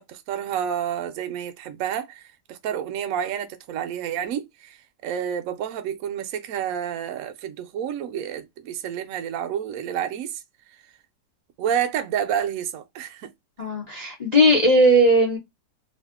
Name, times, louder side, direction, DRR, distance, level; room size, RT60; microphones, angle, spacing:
voice 1, 0.0-2.2 2.5-4.8 5.0-10.3 11.6-13.3, right 9 dB, 65° right, 0.9 m, -29 dB
voice 2, 13.6-15.4, equal, 50° left, 0.4 m, -17 dB
2.8 x 2.4 x 3.5 m
omnidirectional pair, 1.9 m